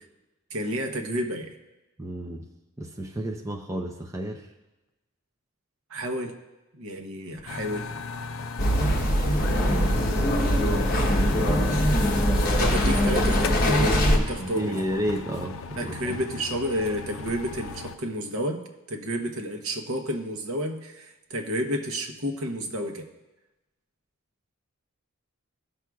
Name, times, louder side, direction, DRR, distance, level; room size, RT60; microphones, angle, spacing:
voice 1, 0.5-1.6 5.9-6.3 6.7-7.9 12.6-14.8 15.8-23.1, equal, 70° right, 4 dB, 0.9 m, -30 dB
voice 2, 2.0-2.4 2.8-4.5 9.6-11.8 14.3-16.2, right 1 dB, 15° right, 2 dB, 0.5 m, -32 dB
sound 1, 7.5-18.0, left 4 dB, 65° left, 0.5 m, -36 dB
sound 2, 8.6-14.2, equal, 40° left, 1.0 m, -22 dB
16.0 x 6.1 x 2.3 m, 1.0 s
head